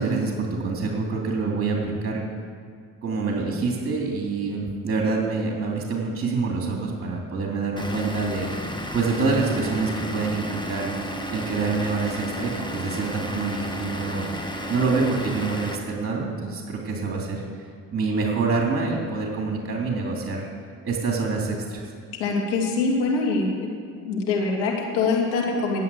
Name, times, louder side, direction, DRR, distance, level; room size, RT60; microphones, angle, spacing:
voice 1, 0.0-2.2 3.0-8.5 8.9-14.3 14.7-17.4 17.9-20.4 20.8-21.8, right 4 dB, 35° right, -1 dB, 2.8 m, -26 dB
Vehicle / Engine, 7.8-15.8, equal, 10° left, 1.5 m, -33 dB
voice 2, 22.2-23.6 24.0-25.8, left 3 dB, 85° left, 0 dB, 2.4 m, -24 dB
11.0 x 8.4 x 8.2 m, 2.1 s
supercardioid pair, 70°, 39 cm